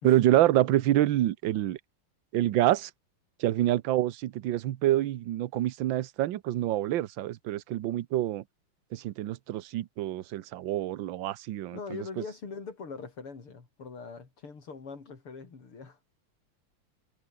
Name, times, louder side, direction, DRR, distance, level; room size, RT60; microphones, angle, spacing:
voice 1, 0.0-1.8 2.3-2.9 3.4-8.4 8.9-12.0, right 14 dB, 65° right, 1.5 m, -27 dB
voice 2, 11.7-16.0, left 4 dB, 80° left, 4.9 m, -42 dB
omnidirectional pair, 2.4 m